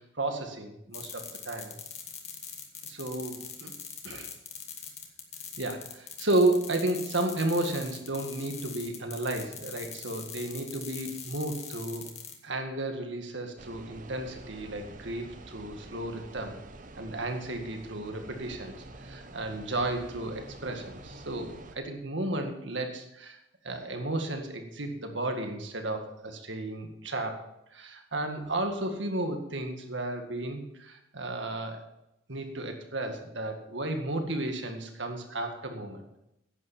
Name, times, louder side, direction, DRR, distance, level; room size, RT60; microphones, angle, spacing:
voice 1, 0.0-1.8 2.9-3.7 4.0-4.3 5.6-12.1 12.4-16.6 17.0-18.7 19.0-23.4 23.6-27.4 27.7-31.8 32.3-36.0, right 2 dB, 70° right, 5 dB, 2.0 m, -33 dB
sound 1, 0.9-12.4, left 7 dB, 35° left, 1.8 m, -42 dB
sound 2, 13.6-21.8, right 2 dB, 40° right, 0.9 m, -48 dB
11.0 x 8.8 x 7.2 m, 0.83 s
head